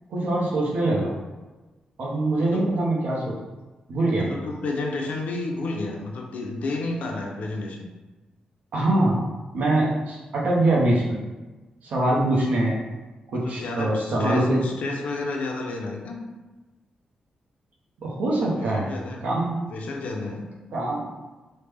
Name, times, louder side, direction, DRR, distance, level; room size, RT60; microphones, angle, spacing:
voice 1, 0.1-1.1 2.0-3.4 3.9-4.3 8.7-9.2 9.5-11.2 11.8-12.8 13.3-14.6 18.0-18.9 19.2-19.5 20.7-21.1, right 1 dB, 75° right, -3 dB, 0.7 m, -23 dB
voice 2, 2.4-2.7 4.1-7.9 13.3-16.2 18.6-19.3 19.7-20.5, left 3 dB, 70° left, 1 dB, 0.5 m, -31 dB
3.1 x 2.1 x 3.3 m, 1.2 s
wide cardioid pair, 145°, 3 cm